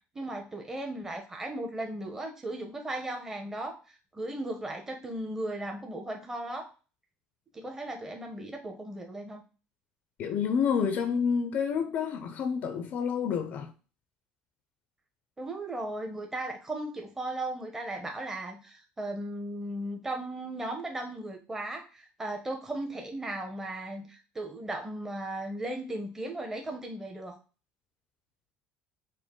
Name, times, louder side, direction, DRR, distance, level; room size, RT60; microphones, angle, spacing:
voice 1, 0.1-3.8 4.1-6.7 7.5-9.4 15.4-27.4, right 1 dB, 15° right, 0.9 m, -36 dB
voice 2, 10.2-13.7, left 6 dB, 50° left, 0.5 m, -29 dB
5.1 x 2.1 x 3.7 m
cardioid pair, 130°, 4 cm